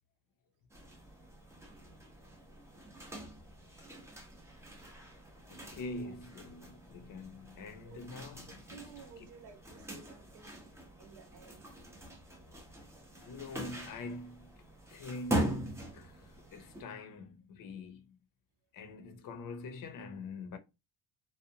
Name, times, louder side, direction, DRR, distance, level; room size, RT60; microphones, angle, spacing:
sound 1, 0.7-16.8, right 1 dB, 5° right, 0.4 m, -43 dB
voice 1, 5.5-9.3 13.1-14.5 14.9-18.2 18.7-20.6, left 3 dB, 55° left, 0.6 m, -45 dB
voice 2, 8.5-10.6 11.0-11.7 13.2-13.3, right 7 dB, 70° right, 0.7 m, -55 dB
2.6 x 2.1 x 2.6 m
cardioid pair, 165°, 41 cm